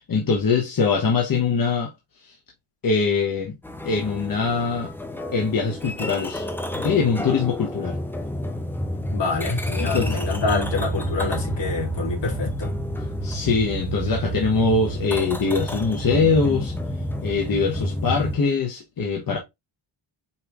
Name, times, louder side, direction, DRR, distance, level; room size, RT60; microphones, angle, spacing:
voice 1, 0.0-1.9 2.2-2.3 2.8-3.5 3.8-4.9 5.3-6.5 6.8-8.0 9.8-10.2 13.2-16.7 17.2-19.4, left 4 dB, 45° left, 1.2 m, -22 dB
sound 1, 3.6-18.4, equal, 5° left, 0.7 m, -29 dB
voice 2, 9.1-12.7, left 3 dB, 65° left, 2.8 m, -26 dB
5.6 x 3.3 x 2.5 m
cardioid pair, 80°, 46 cm